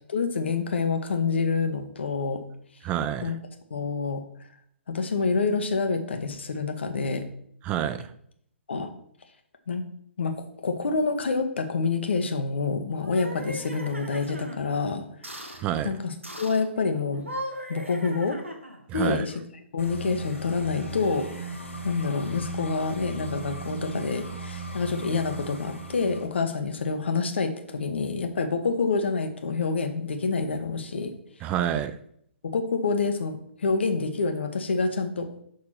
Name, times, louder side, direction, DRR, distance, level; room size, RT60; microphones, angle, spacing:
voice 1, 0.1-2.4 3.2-3.4 3.7-4.2 4.9-7.3 8.7-8.9 9.7-9.8 10.2-15.0 15.3-17.2 17.7-18.4 18.9-19.3 19.7-21.5 21.8-31.1 32.4-35.3, left 4 dB, 65° left, 6 dB, 1.0 m, -27 dB
voice 2, 2.8-3.3 7.6-8.1 15.6-15.9 18.9-19.2 31.4-32.0, right 10 dB, 20° right, 11 dB, 0.4 m, -28 dB
sound 1, 12.9-14.6 15.2-15.6 16.2-16.7 17.1-18.9, equal, 90° right, 1.1 m, -38 dB
sound 2, 19.8-26.3, right 3 dB, 80° left, 1.9 m, -37 dB
6.4 x 3.6 x 5.8 m, 0.68 s
figure-of-eight pair, 130°, 7 cm